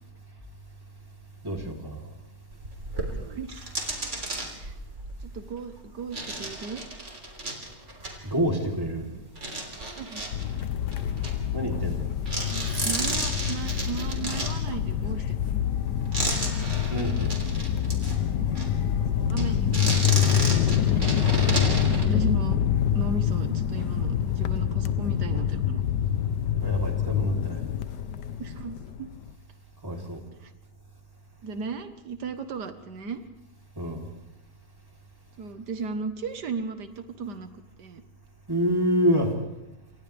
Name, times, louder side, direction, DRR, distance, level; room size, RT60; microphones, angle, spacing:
voice 1, 1.4-2.0 8.2-9.1 11.5-12.0 16.9-17.3 20.6-20.8 26.6-27.6 29.8-30.2 33.8-34.0 38.5-39.3, equal, 15° right, 0 dB, 3.7 m, -27 dB
sound 1, 2.5-9.0 9.3-12.0 12.3-18.2 18.5-18.7 19.3-22.0, right 2 dB, 45° right, 3.8 m, -33 dB
voice 2, 3.2-3.7 4.6-4.8 5.2-6.8 10.0-10.2 12.5-15.8 18.4-18.5 19.2-20.1 21.0-21.4 21.9-22.6 22.9-25.8 28.4-29.1 30.4-30.5 31.4-33.2 35.4-37.5 37.8-38.0, right 4 dB, 80° right, 8 dB, 1.9 m, -36 dB
sound 2, 10.3-29.3, left 9 dB, 90° left, 1.5 m, -26 dB
29.0 x 26.5 x 3.5 m, 0.95 s
omnidirectional pair, 1.7 m